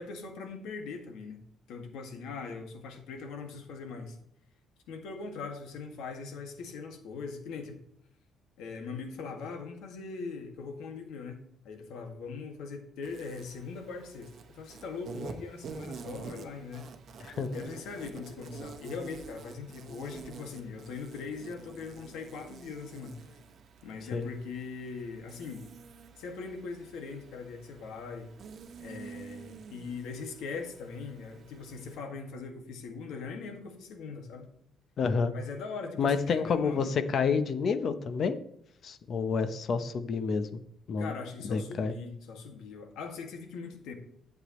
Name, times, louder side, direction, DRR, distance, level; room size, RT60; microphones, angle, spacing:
voice 1, 0.0-1.4 1.7-4.2 4.9-7.8 8.6-16.9 17.5-23.1 23.8-25.7 26.2-28.3 28.8-34.5 35.3-36.9 41.0-43.9, left 4 dB, 90° left, 4 dB, 1.9 m, -41 dB
Insect, 13.0-32.0, right 5 dB, 45° right, 1.0 m, -48 dB
voice 2, 35.0-35.3 36.0-38.4 38.8-40.5 40.9-41.1 41.5-41.9, left 5 dB, 40° left, 11 dB, 0.7 m, -29 dB
11.5 x 8.1 x 3.1 m, 0.72 s
cardioid pair, 175°, 0 cm